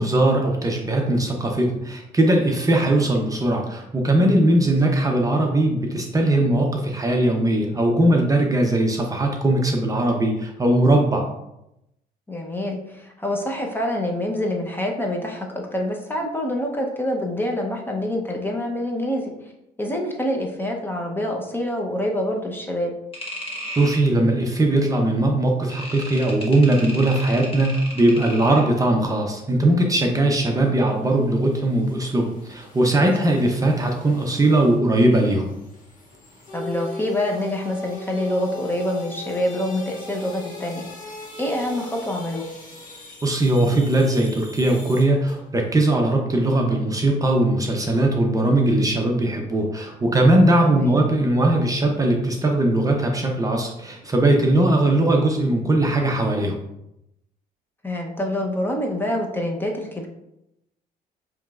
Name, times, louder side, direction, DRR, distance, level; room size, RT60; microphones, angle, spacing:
voice 1, 0.0-11.2 23.8-35.5 43.2-56.6, right 1 dB, 20° right, 1 dB, 0.6 m, -20 dB
voice 2, 12.3-19.3 19.8-22.9 36.5-42.4 50.6-51.0 57.8-60.1, left 1 dB, 10° left, 1 dB, 0.7 m, -26 dB
sound 1, 23.1-24.0 25.7-28.7, equal, 35° left, 1.2 m, -34 dB
sound 2, 28.7-29.1 29.5-45.7 46.0-46.1, left 2 dB, 50° left, 1.4 m, -41 dB
7.1 x 3.1 x 2.4 m, 0.85 s
cardioid pair, 110°, 17 cm